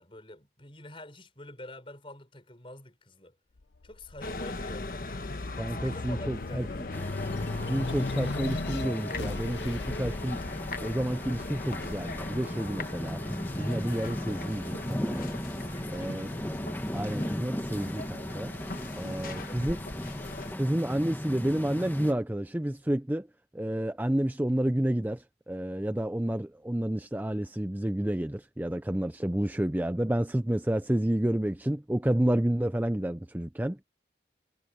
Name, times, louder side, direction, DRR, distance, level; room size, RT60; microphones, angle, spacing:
voice 1, 0.0-3.4 3.8-5.0 5.6-7.1 15.6-16.3 18.9-20.0, left 1 dB, 30° left, 5.9 m, -47 dB
sound 1, 3.6-14.4 14.9-16.0, left 3 dB, 85° left, 0.8 m, -39 dB
sound 2, 4.2-20.5, left 2 dB, 50° left, 1.2 m, -39 dB
voice 2, 5.6-6.7 7.7-10.4 10.8-13.2 13.6-15.4 15.9-16.3 16.9-18.5 19.0-19.8 20.6-23.3 23.5-33.8, right 1 dB, 10° right, 0.5 m, -30 dB
sound 3, 6.9-22.1, equal, 10° left, 1.3 m, -37 dB
head